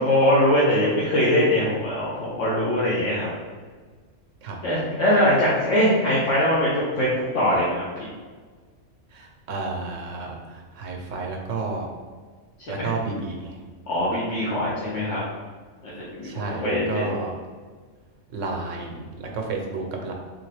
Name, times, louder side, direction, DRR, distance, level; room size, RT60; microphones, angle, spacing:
voice 1, 0.0-3.3 4.6-8.1 12.7-12.9 13.9-15.2 15.8-17.1, left 1 dB, 70° left, -8 dB, 1.2 m, -22 dB
voice 2, 9.1-11.9 12.7-13.6 16.2-17.3 18.3-20.1, right 3 dB, 75° right, 1 dB, 1.1 m, -31 dB
3.8 x 3.4 x 3.3 m, 1.5 s
omnidirectional pair, 1.3 m